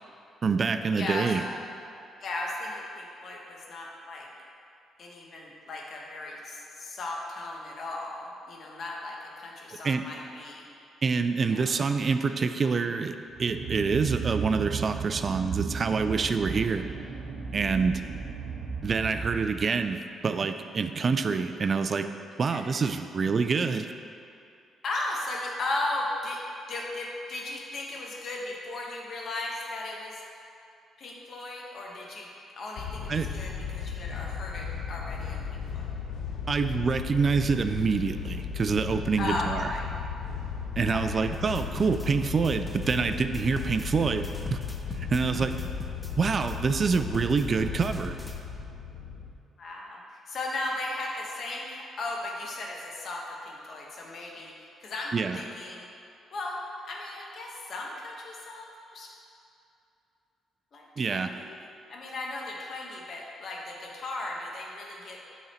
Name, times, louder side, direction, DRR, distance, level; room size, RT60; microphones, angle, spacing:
voice 1, 0.4-1.4 9.8-10.0 11.0-16.9 17.5-18.0 18.8-22.1 22.4-23.9 33.1-33.3 36.5-39.7 40.8-44.6 44.9-45.5 46.2-48.2 55.1-55.4 61.0-61.3, right 5 dB, 40° right, 9 dB, 0.3 m, -26 dB
voice 2, 1.0-1.3 2.2-4.3 5.0-10.6 11.4-11.7 22.5-22.6 24.8-26.4 26.7-30.2 31.0-32.3 32.6-35.9 39.2-39.8 40.9-41.2 49.6-55.9 56.3-59.1 60.7-65.2, left 2 dB, 55° left, -2 dB, 1.2 m, -36 dB
sound 1, 13.3-19.9, right 5 dB, 65° right, 0.9 m, -35 dB
sound 2, 32.8-49.3, left 6 dB, 75° left, 0.7 m, -35 dB
sound 3, 41.3-48.4, left 1 dB, 10° left, 0.6 m, -43 dB
8.3 x 4.0 x 4.3 m, 2.7 s
cardioid pair, 90°, 0 cm